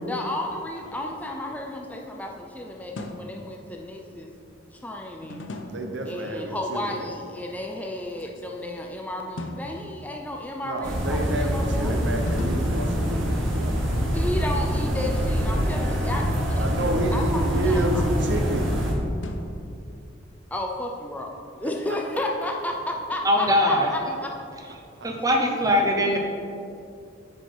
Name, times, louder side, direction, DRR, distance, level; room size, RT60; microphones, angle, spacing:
voice 1, 0.1-4.3 4.7-5.5 6.1-11.9 14.1-18.0 20.5-21.3 21.6-24.3, left 1 dB, 10° left, 1 dB, 0.4 m, -32 dB
sound 1, 0.6-2.3 3.0-3.6 5.2-6.1 8.1-8.9 9.4-10.5 12.1-13.5 15.9-18.4 19.2-20.2, left 1 dB, 70° left, 0.7 m, -41 dB
voice 2, 5.7-7.1 10.6-13.3 13.6-14.0 16.6-18.7, right 1 dB, 65° right, 3 dB, 0.8 m, -29 dB
sound 2, 10.8-18.9, equal, 85° right, 1.4 m, -25 dB
voice 3, 23.2-23.9 25.0-26.2, equal, 20° right, 1 dB, 0.9 m, -21 dB
9.6 x 4.8 x 4.5 m, 2.5 s
head